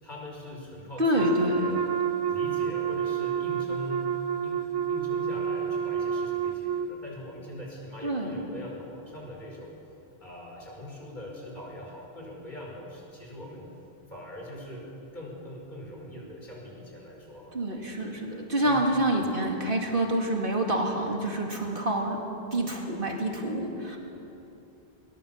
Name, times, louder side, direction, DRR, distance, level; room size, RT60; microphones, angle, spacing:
voice 1, 0.0-1.2 1.5-1.8 2.3-4.1 4.4-9.8 10.2-13.7 14.1-14.8 15.1-17.6 18.6-18.8 19.1-19.3, left 1 dB, 50° left, -2 dB, 5.3 m, -42 dB
voice 2, 1.0-1.6 8.0-8.4 17.5-22.2 22.5-24.0, right 1 dB, 55° right, 1 dB, 2.6 m, -27 dB
Wind instrument woodwind instrument, 1.1-6.9, right 7 dB, 30° right, 0.6 m, -29 dB
21.0 x 20.0 x 7.3 m, 3.0 s
omnidirectional pair, 1.1 m